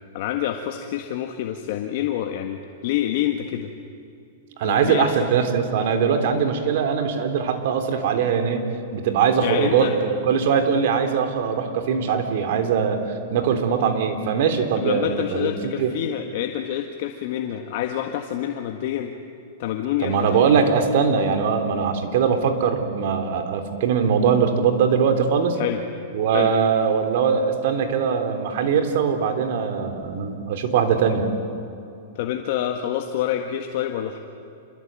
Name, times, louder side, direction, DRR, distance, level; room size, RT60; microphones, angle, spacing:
voice 1, 0.1-3.7 4.6-5.3 9.4-9.9 14.7-19.1 19.6-20.7 25.6-25.8 26.3-26.5 32.1-34.2, left 11 dB, 50° left, 4 dB, 1.7 m, -27 dB
voice 2, 4.6-8.6 8.9-13.0 13.3-15.9 20.0-25.6 26.1-31.3, right 6 dB, 55° right, 7 dB, 3.5 m, -21 dB
27.5 x 22.5 x 9.1 m, 2.7 s
supercardioid pair, 155°, 0 cm